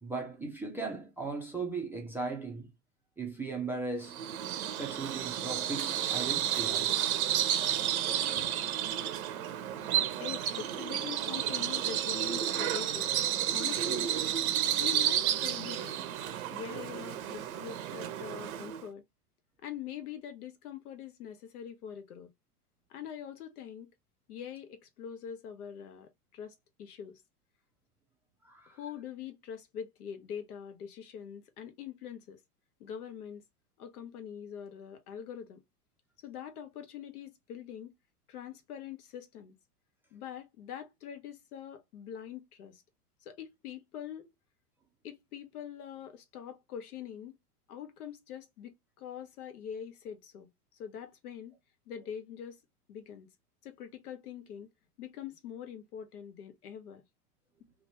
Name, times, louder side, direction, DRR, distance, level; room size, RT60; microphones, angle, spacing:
voice 1, 0.0-2.7 3.2-4.2 4.8-7.0 28.4-28.8, right 3 dB, 5° right, 0.4 m, -37 dB
Bird vocalization bird call bird song, 4.0-18.8, right 11 dB, 65° right, 0.7 m, -31 dB
voice 2, 10.2-13.1 13.4-14.2 14.7-16.0 16.5-19.0 19.6-22.3 22.9-23.9 24.3-27.2 28.7-32.4 32.8-33.4 33.8-35.6 36.2-37.9 38.3-39.5 40.1-42.8 43.2-44.3 45.0-47.4 47.7-51.5 51.9-52.6 52.9-53.3 53.6-54.7 55.0-57.0, left 9 dB, 70° left, 0.9 m, -44 dB
2.9 x 2.3 x 2.8 m
hypercardioid pair, 105°, 46 cm